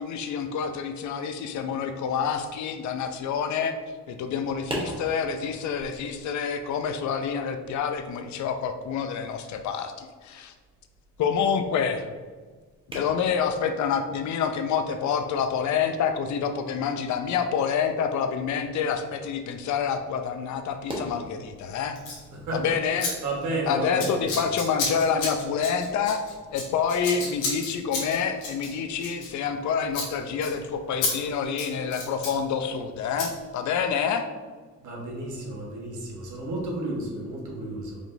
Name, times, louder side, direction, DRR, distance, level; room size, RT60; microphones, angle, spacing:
voice 1, 0.0-3.7 4.1-10.5 11.2-12.1 12.9-22.0 22.5-23.1 23.6-26.2 26.5-34.3, left 6 dB, 70° left, 7 dB, 0.5 m, -27 dB
sound 1, 4.4-21.1, right 1 dB, 15° right, 1.0 m, -44 dB
Scissors, 22.0-22.2 23.0-23.1 23.4-23.6 24.0-29.6 29.9-30.1 30.4-30.5 31.0-31.1 31.4-32.4 33.2-33.3, left 3 dB, 90° left, 1.2 m, -31 dB
voice 2, 22.3-22.6 23.0-24.4 34.8-38.0, right 2 dB, 75° right, -2 dB, 1.3 m, -32 dB
5.1 x 2.9 x 2.6 m, 1.4 s
cardioid pair, 90°, 30 cm